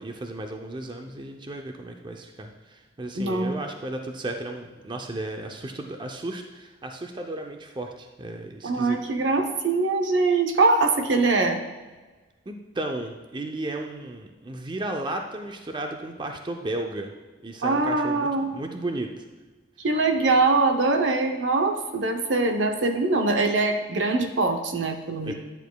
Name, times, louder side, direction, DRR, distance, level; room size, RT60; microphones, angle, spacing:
voice 1, 0.0-9.0 12.5-17.1 17.4-19.1 25.2-25.3, right 2 dB, 25° right, 3 dB, 0.5 m, -34 dB
voice 2, 3.2-3.5 8.6-11.6 17.6-18.5 19.8-25.3, right 3 dB, 80° right, 5 dB, 0.7 m, -23 dB
10.0 x 7.1 x 2.3 m, 1.3 s
head